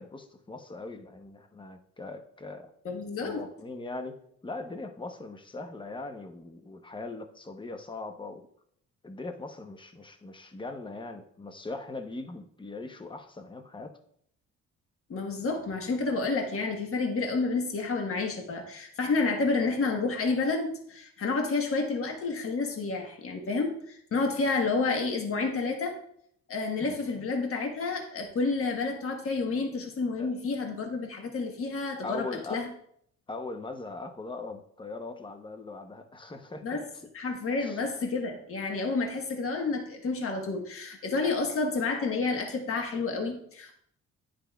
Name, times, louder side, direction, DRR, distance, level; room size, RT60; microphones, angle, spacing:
voice 1, 0.0-2.7 3.2-8.4 9.0-13.9 26.8-27.0 30.2-30.3 32.0-32.6 33.3-36.8 37.6-37.9, left 3 dB, 15° left, 6 dB, 0.8 m, -40 dB
voice 2, 2.8-3.4 15.1-26.0 26.5-32.7 36.6-36.8 37.1-43.7, left 3 dB, 45° left, 2 dB, 1.3 m, -30 dB
9.7 x 5.1 x 2.3 m, 0.66 s
cardioid pair, 90°, 30 cm